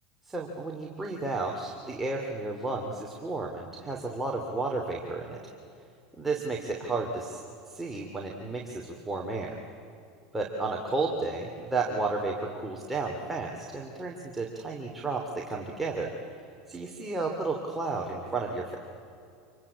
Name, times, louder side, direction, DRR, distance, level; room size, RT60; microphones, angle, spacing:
voice 1, 0.3-5.4 6.2-7.4 7.7-9.6 10.3-16.1 16.7-18.8, right 3 dB, 10° right, -1 dB, 3.0 m, -32 dB
27.5 x 23.5 x 8.7 m, 2.5 s
supercardioid pair, 105°, 2 cm